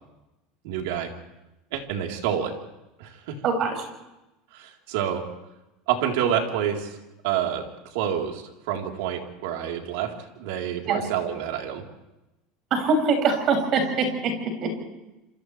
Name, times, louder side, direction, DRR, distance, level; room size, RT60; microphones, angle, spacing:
voice 1, 0.6-1.1 1.7-2.5 3.0-3.4 4.5-5.2 5.9-7.0 7.2-7.7 7.9-11.8, right 9 dB, 75° right, 1 dB, 3.9 m, -28 dB
voice 2, 3.4-3.9 10.9-11.0 12.7-14.1 14.6-14.8, right 4 dB, 40° right, 3 dB, 6.9 m, -23 dB
28.5 x 27.5 x 3.4 m, 0.97 s
supercardioid pair, 150°, 0 cm